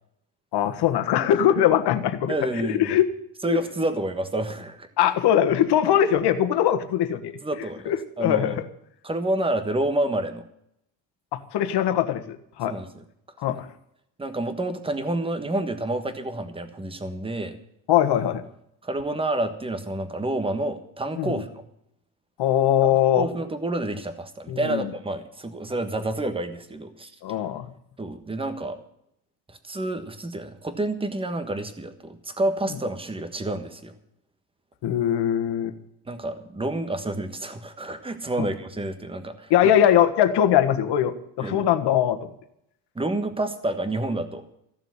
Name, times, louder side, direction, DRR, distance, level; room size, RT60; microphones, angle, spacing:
voice 1, 0.5-2.3 2.6-3.1 3.5-3.6 5.0-7.4 7.8-8.6 11.3-12.7 13.4-13.7 17.9-18.4 21.2-21.3 22.4-23.3 24.5-24.9 27.2-27.7 34.8-35.7 38.4-38.5 39.5-42.3, left 10 dB, 50° left, 8 dB, 1.6 m, -21 dB
voice 2, 2.3-3.0 3.4-4.9 7.4-8.6 9.0-10.4 12.7-12.9 14.2-17.6 18.8-21.7 23.2-27.1 28.0-28.8 29.5-33.9 36.1-39.5 41.4-41.7 42.9-44.4, right 2 dB, 10° right, 9 dB, 1.4 m, -29 dB
15.0 x 7.0 x 9.6 m, 0.73 s
cardioid pair, 145°, 50 cm